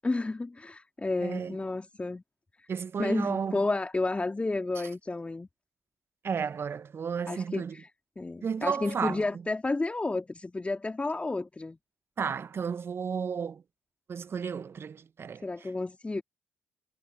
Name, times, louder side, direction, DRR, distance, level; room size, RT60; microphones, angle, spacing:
voice 1, 0.0-2.2 2.6-2.7 3.0-5.5 7.3-7.9 8.2-11.8 15.4-16.2, left 3 dB, 20° left, 3.7 m, -31 dB
voice 2, 1.2-1.6 2.7-3.6 6.2-7.8 8.4-9.2 12.2-13.6 14.1-15.7, right 6 dB, 45° right, 1.3 m, -33 dB
figure-of-eight pair, 45°, 6 cm